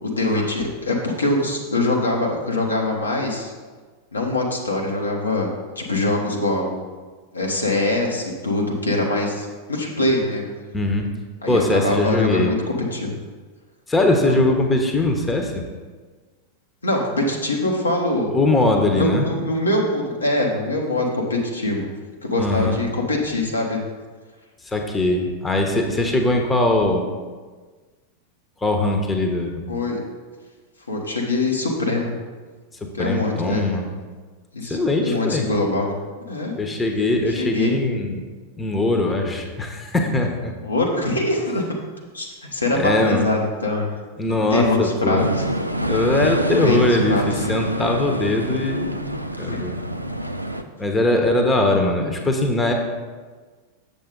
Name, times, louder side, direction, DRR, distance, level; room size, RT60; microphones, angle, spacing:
voice 1, 0.0-3.5 4.1-6.8 7.3-10.5 11.4-13.1 14.3-14.4 16.8-18.3 18.9-21.9 22.2-23.8 29.7-30.0 30.9-32.1 32.9-33.7 34.5-35.9 36.2-36.5 37.4-37.8 40.6-41.6 42.1-43.9 44.5-45.5 46.4-46.8 47.1-47.5 49.5-49.6 51.6-51.8, left 2 dB, 80° left, -1 dB, 1.2 m, -23 dB
voice 2, 10.7-11.1 11.5-12.6 13.9-15.5 18.3-19.3 22.4-22.8 24.6-27.1 28.6-29.6 32.8-33.9 34.7-35.5 36.6-38.2 38.6-40.5 42.7-43.3 44.2-45.3 45.9-49.8 50.8-52.7, left 2 dB, 15° left, 3 dB, 1.0 m, -21 dB
sound 1, 45.2-50.6, right 1 dB, 90° right, 0.4 m, -26 dB
7.2 x 6.9 x 3.8 m, 1.4 s
figure-of-eight pair, 90°, 0 cm